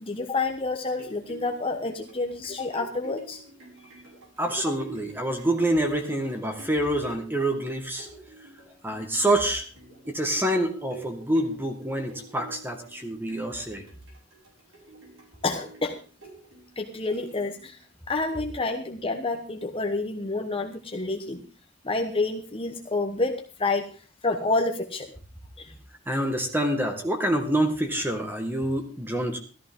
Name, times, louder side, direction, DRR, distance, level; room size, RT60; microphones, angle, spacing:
voice 1, 0.0-3.4 3.8-3.9 4.7-4.8 15.4-16.0 16.8-17.8 18.1-21.4 21.8-23.9 24.2-25.1 25.6-25.7, left 3 dB, 25° left, 3 dB, 1.1 m, -29 dB
sound 1, 0.9-17.8 18.3-18.4, right 3 dB, 70° right, 5.7 m, -48 dB
voice 2, 4.4-8.1 8.8-9.6 10.1-13.8 26.1-29.4, right 1 dB, 10° right, 5 dB, 1.8 m, -26 dB
14.0 x 13.5 x 3.7 m, 0.37 s
head